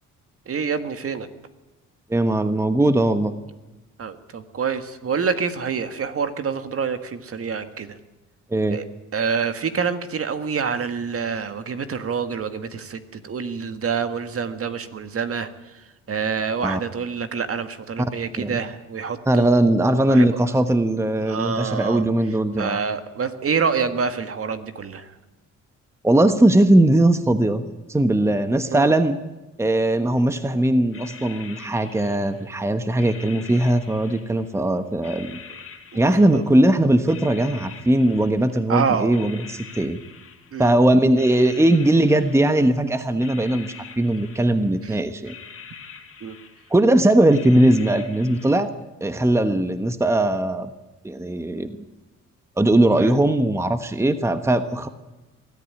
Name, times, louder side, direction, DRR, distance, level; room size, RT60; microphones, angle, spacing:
voice 1, 0.5-1.3 4.0-7.9 8.7-8.8 9.1-15.5 16.1-20.3 21.3-22.1 22.6-25.1 28.7-28.9 35.9-36.4 38.7-39.1 40.5-40.7 46.2-46.4 53.0-53.1, right 6 dB, 50° right, 9 dB, 1.8 m, -27 dB
voice 2, 2.1-3.3 8.5-8.8 16.6-16.8 18.4-18.6 19.3-22.8 26.0-27.6 27.9-29.2 29.6-35.4 35.9-40.0 40.6-45.3 46.7-48.7 49.0-50.7 51.0-51.8 52.6-54.9, right 1 dB, 10° right, 10 dB, 1.1 m, -19 dB
sound 1, 30.4-30.5 30.9-32.6 33.0-34.6 35.0-36.7 37.1-38.7 39.1-40.8 41.2-42.8 43.1-44.9 45.2-46.9 47.3-48.6, left 6 dB, 45° left, 2.7 m, -44 dB
22.0 x 14.0 x 9.8 m, 1.1 s
cardioid pair, 90°, 30 cm